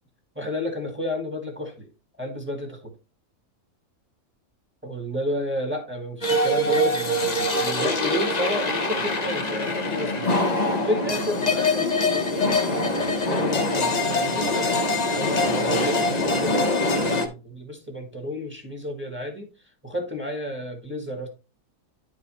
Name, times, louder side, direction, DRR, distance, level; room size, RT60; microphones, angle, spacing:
voice 1, 0.3-1.9 2.2-3.0 4.8-14.8 15.1-19.5 19.8-21.3, left 1 dB, 10° right, 2 dB, 1.5 m, -31 dB
sound 1, 6.2-17.3, left 2 dB, 30° left, 0.9 m, -23 dB
10.5 x 4.8 x 3.0 m, 0.30 s
omnidirectional pair, 1.6 m